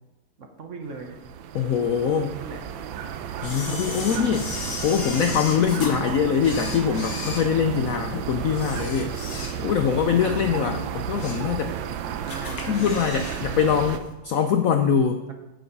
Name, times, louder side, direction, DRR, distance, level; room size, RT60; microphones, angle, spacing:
voice 1, 0.4-1.2 2.4-2.6 4.0-4.4 9.2-10.8 12.2-13.1, right 3 dB, 45° right, 4 dB, 1.1 m, -39 dB
sound 1, 0.9-14.0, right 8 dB, 80° right, 1.4 m, -33 dB
voice 2, 1.5-2.4 3.4-9.1 9.6-11.8 12.7-15.2, left 7 dB, 80° left, 6 dB, 0.7 m, -23 dB
Camera, 3.4-5.9 6.4-8.0 8.5-9.9 10.2-10.4 10.9-11.5 11.8-11.9 12.3-13.4 13.7-13.8, left 4 dB, 50° left, 1.7 m, -36 dB
7.9 x 7.1 x 5.3 m, 1.0 s
omnidirectional pair, 2.1 m